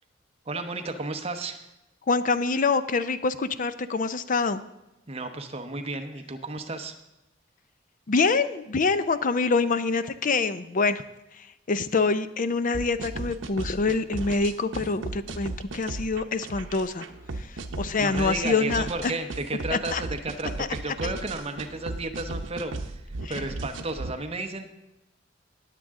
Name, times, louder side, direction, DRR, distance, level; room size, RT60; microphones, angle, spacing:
voice 1, 0.5-1.6 5.1-6.9 18.0-24.7, right 2 dB, 30° right, 6 dB, 1.0 m, -33 dB
voice 2, 2.1-4.6 8.1-11.0 11.7-17.1 17.4-17.5 17.8-19.1 19.7-20.0 20.6-20.7 21.0-21.1 23.2-23.4, left 4 dB, 45° left, 13 dB, 0.5 m, -25 dB
sound 1, 12.7-24.1, right 2 dB, 80° right, 0.8 m, -35 dB
19.5 x 7.5 x 3.7 m, 0.92 s
head